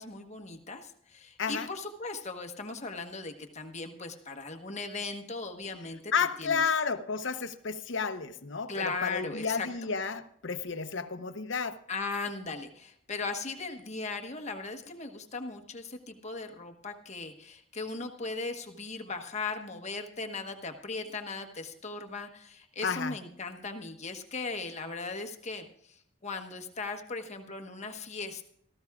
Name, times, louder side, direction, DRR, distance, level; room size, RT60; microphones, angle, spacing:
voice 1, 0.0-6.1 6.4-6.6 8.7-9.7 11.9-28.4, left 3 dB, 35° left, 5 dB, 1.2 m, -38 dB
voice 2, 6.1-11.8 22.8-23.2, left 5 dB, 65° left, 9 dB, 0.8 m, -31 dB
18.0 x 14.0 x 2.4 m, 0.71 s
head